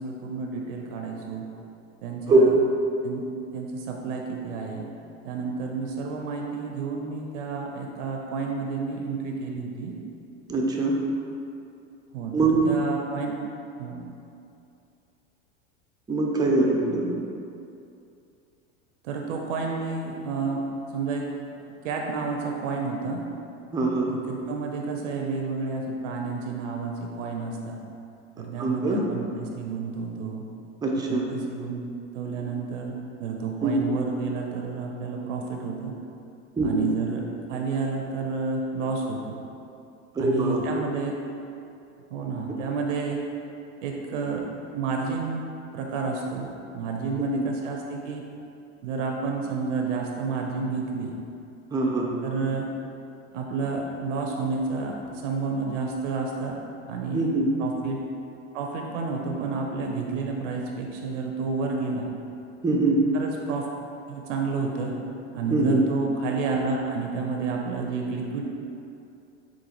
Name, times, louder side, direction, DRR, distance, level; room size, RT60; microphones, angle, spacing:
voice 1, 0.0-1.4 2.0-2.6 3.0-3.3 3.5-4.9 5.2-10.0 12.1-12.4 12.6-13.4 13.8-14.0 19.0-20.6 20.9-21.3 21.8-23.2 24.1-27.8 28.4-30.4 31.1-31.8 32.1-35.9 36.6-37.2 37.5-39.4 40.2-41.2 42.1-43.2 43.8-44.4 44.7-45.4 45.7-48.2 48.8-51.1 52.2-52.7 53.3-56.6 56.9-57.3 57.6-58.0 58.5-62.1 63.1-63.7 64.1-65.0 65.3-68.4, right 4 dB, 80° right, 1 dB, 0.5 m, -30 dB
voice 2, 10.5-11.0 12.3-12.6 16.1-17.1 23.7-24.1 28.6-29.0 30.8-31.3 33.6-33.7 36.6-36.8 40.2-40.6 47.2-47.3 51.7-52.1 57.1-57.5 62.6-63.0 65.5-65.8, right 2 dB, 10° right, -1 dB, 0.3 m, -22 dB
3.8 x 2.5 x 2.8 m, 2.6 s
hypercardioid pair, 90°, 37 cm